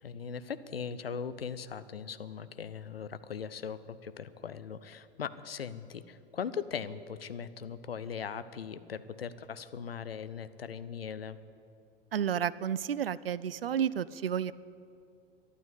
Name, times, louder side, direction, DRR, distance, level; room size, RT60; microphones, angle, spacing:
voice 1, 0.0-11.4, left 7 dB, 80° left, 14 dB, 0.8 m, -39 dB
voice 2, 12.1-14.5, right 9 dB, 75° right, 19 dB, 0.5 m, -31 dB
13.0 x 12.0 x 8.3 m, 2.6 s
figure-of-eight pair, 90°, 29 cm